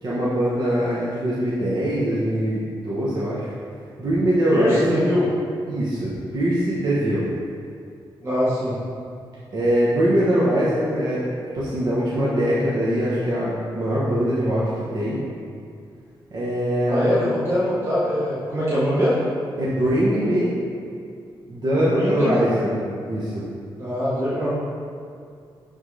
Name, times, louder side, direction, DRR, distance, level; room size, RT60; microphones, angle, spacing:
voice 1, 0.0-3.5 4.0-5.0 5.7-7.3 9.5-11.2 11.5-15.2 16.3-17.2 19.6-20.5 21.5-22.8 23.1-23.4, equal, 50° right, -8 dB, 1.2 m, -22 dB
voice 2, 4.5-5.3 8.2-8.8 16.9-19.3 21.9-22.4 23.8-24.5, equal, 30° right, -11 dB, 1.5 m, -22 dB
11.0 x 3.8 x 3.3 m, 2.3 s
wide cardioid pair, 145°, 9 cm